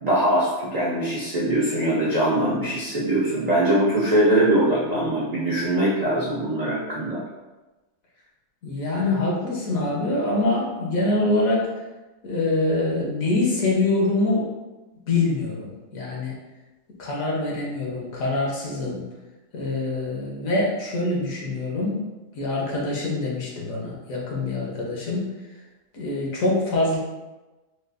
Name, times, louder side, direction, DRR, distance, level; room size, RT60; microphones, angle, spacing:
voice 1, 0.0-7.2, right 1 dB, 55° right, -8 dB, 0.4 m, -22 dB
voice 2, 8.6-11.7 12.2-14.5 15.1-16.3 17.0-19.0 19.5-22.0 22.3-25.3 25.9-27.0, left 2 dB, 70° left, -3 dB, 1.2 m, -24 dB
4.2 x 2.3 x 2.4 m, 1.1 s
omnidirectional pair, 1.6 m